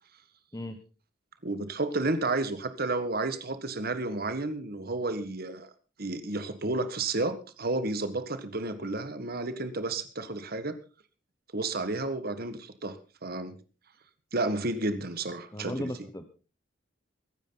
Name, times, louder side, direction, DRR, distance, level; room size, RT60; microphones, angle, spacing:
voice 1, 1.4-5.7 6.0-10.8 11.5-13.0 13.2-13.5 14.3-15.9, right 2 dB, 55° right, 11 dB, 1.7 m, -31 dB
voice 2, 15.5-16.2, left 1 dB, 20° left, 8 dB, 1.1 m, -36 dB
23.0 x 10.0 x 4.0 m, 0.33 s
head